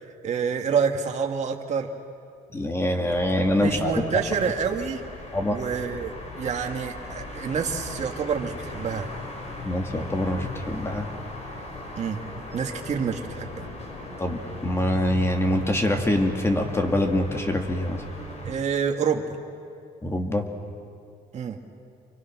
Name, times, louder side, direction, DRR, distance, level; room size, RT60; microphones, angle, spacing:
voice 1, 0.2-1.9 3.5-5.1 5.5-9.1 12.0-12.2 12.5-13.7 18.4-19.2 21.3-21.6, right 6 dB, 40° right, 3 dB, 2.0 m, -27 dB
voice 2, 2.5-3.9 5.3-5.6 9.6-11.1 14.2-18.0 20.0-20.5, left 1 dB, 15° left, 4 dB, 2.3 m, -24 dB
sound 1, 3.1-18.5, left 2 dB, 40° left, 5.0 m, -38 dB
29.0 x 24.0 x 6.1 m, 2.4 s
cardioid pair, 110°, 17 cm